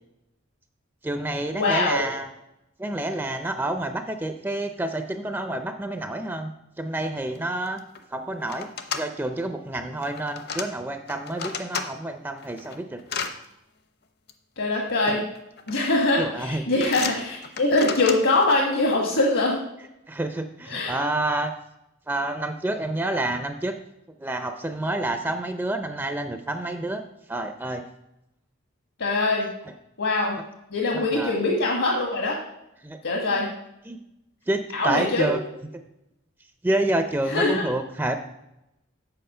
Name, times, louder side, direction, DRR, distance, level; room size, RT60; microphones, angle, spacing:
voice 1, 1.0-2.3 2.8-6.5 6.8-7.8 8.1-8.7 9.0-13.0 15.1-15.2 16.2-16.6 20.1-21.5 22.1-23.8 24.2-27.8 31.1-31.4 32.8-33.0 33.3-33.4 33.9-34.0 34.5-35.4 36.6-38.2, right 1 dB, 10° right, 7 dB, 0.5 m, -28 dB
voice 2, 1.5-2.0 14.6-15.2 15.7-19.6 20.7-21.0 29.0-29.5 30.0-30.4 30.7-32.4 33.0-33.5 34.7-35.3 37.3-37.6, left 2 dB, 70° left, 0 dB, 1.5 m, -23 dB
sound 1, 7.4-7.5 7.7-8.0 8.5-9.0 10.0-10.7 11.1-11.9 12.4-13.3 14.3-14.4 15.4-15.7 16.0-16.4 16.8-18.6, left 6 dB, 55° left, 0.8 m, -33 dB
7.9 x 7.0 x 5.5 m, 0.87 s
head